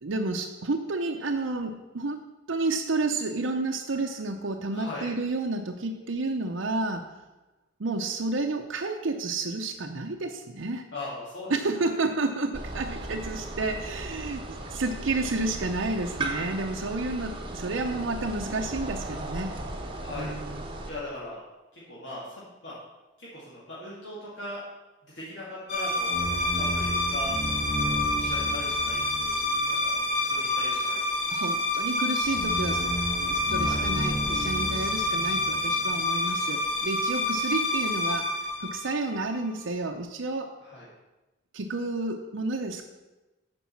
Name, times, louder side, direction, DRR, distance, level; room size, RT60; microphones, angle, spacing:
voice 1, 0.0-7.0 7.8-10.8 11.5-19.6 20.1-20.6 31.3-32.9 33.2-38.3 38.6-40.5 41.5-42.8, right 2 dB, 70° right, 1 dB, 0.7 m, -30 dB
voice 2, 4.7-5.1 10.9-11.5 20.0-20.3 20.9-21.4 21.7-22.8 23.2-24.6 25.0-27.4 28.2-29.3 29.6-31.3 33.6-33.8 40.6-40.9, left 1 dB, 60° left, -8 dB, 2.3 m, -40 dB
sound 1, 12.5-20.9, right 2 dB, 25° right, 1.1 m, -36 dB
sound 2, 25.7-39.3, left 1 dB, 30° left, 2.2 m, -27 dB
9.4 x 5.4 x 7.3 m, 1.1 s
head